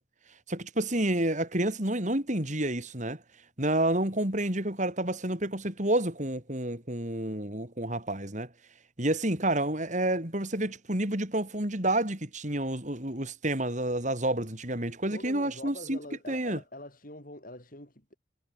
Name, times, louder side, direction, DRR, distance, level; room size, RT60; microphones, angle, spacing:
voice 1, 0.5-3.2 3.6-8.5 9.0-16.0 16.3-16.6, right 1 dB, 40° right, 4.3 m, -29 dB
voice 2, 15.1-18.1, left 1 dB, 45° left, 7.6 m, -44 dB
head